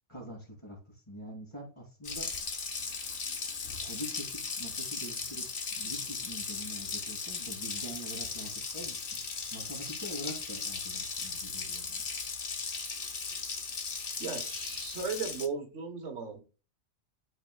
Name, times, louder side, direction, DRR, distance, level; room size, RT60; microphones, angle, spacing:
voice 1, 0.1-2.3 3.8-5.4 5.7-9.2 9.5-12.0, equal, 25° left, -2 dB, 2.7 m, -44 dB
Water tap faucet, 2.0-15.5, left 5 dB, 45° left, 1.0 m, -37 dB
voice 2, 14.2-16.4, right 5 dB, 70° right, 4 dB, 1.5 m, -36 dB
12.0 x 4.3 x 2.3 m, 0.35 s
omnidirectional pair, 1.3 m